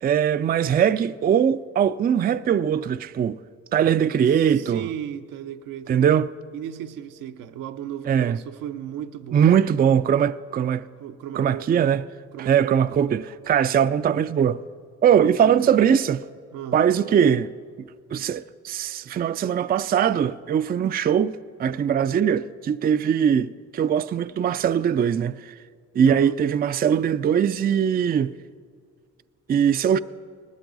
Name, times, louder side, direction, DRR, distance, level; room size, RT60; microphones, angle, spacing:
voice 1, 0.0-3.4 3.7-4.8 5.9-6.3 8.1-8.4 9.3-10.8 11.4-12.0 12.4-14.6 15.0-16.2 16.7-17.5 17.8-25.5 26.0-28.3 29.5-30.0, right 8 dB, 30° right, 0.4 m, -21 dB
voice 2, 4.3-6.2 6.5-9.6 11.0-11.9 12.3-12.8 15.1-15.9 16.5-16.8 26.0-26.4, right 10 dB, 80° right, 0.7 m, -36 dB
19.0 x 13.0 x 4.0 m
supercardioid pair, 60°, 32 cm